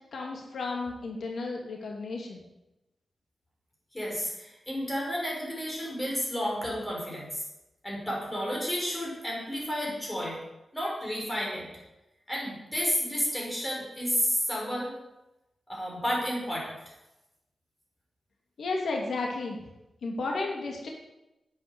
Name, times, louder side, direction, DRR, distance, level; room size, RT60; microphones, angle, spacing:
voice 1, 0.1-2.4 18.6-19.6 20.0-20.9, left 3 dB, 75° left, 0 dB, 2.5 m, -33 dB
voice 2, 3.9-7.4 7.8-10.4 10.7-11.7 12.3-14.9 15.7-16.8, equal, 10° left, -3 dB, 5.7 m, -31 dB
11.0 x 9.1 x 9.7 m, 0.95 s
wide cardioid pair, 150°, 0 cm